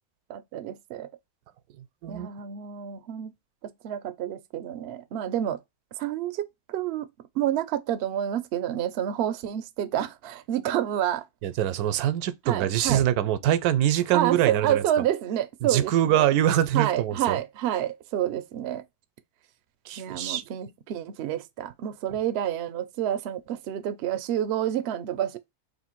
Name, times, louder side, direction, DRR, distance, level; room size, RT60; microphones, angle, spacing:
voice 1, 0.3-1.1 2.1-3.3 3.6-5.6 6.0-7.1 7.4-11.2 12.5-13.0 14.1-16.3 16.7-18.8 20.0-25.4, right 11 dB, 70° right, 0.6 m, -29 dB
voice 2, 11.4-14.8 15.6-17.4 19.9-20.4, right 11 dB, 85° right, 1.1 m, -24 dB
3.2 x 2.6 x 4.4 m
omnidirectional pair, 1.6 m